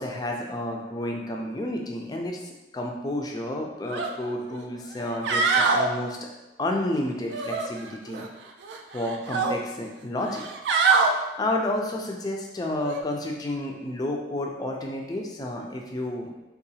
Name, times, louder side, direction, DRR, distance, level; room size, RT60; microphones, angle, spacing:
voice 1, 0.0-6.3 6.6-8.3 8.9-10.4 11.0-16.3, left 1 dB, 20° left, 1 dB, 0.4 m, -31 dB
sound 1, 3.9-4.1 4.5-4.6 5.1-5.9 7.3-8.3 8.6-9.5 10.3-11.1 12.8-13.0, right 4 dB, 70° right, 0.3 m, -24 dB
3.7 x 2.4 x 2.7 m, 1.1 s
head